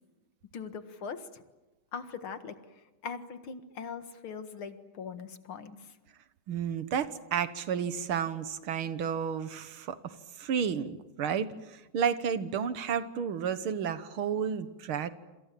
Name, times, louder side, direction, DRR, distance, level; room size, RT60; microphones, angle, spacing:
voice 1, 0.5-1.4 1.9-5.9, left 6 dB, 80° left, 9 dB, 2.5 m, -41 dB
voice 2, 6.5-15.1, right 7 dB, 85° right, 12 dB, 2.2 m, -32 dB
28.0 x 26.0 x 7.6 m, 1.1 s
omnidirectional pair, 2.3 m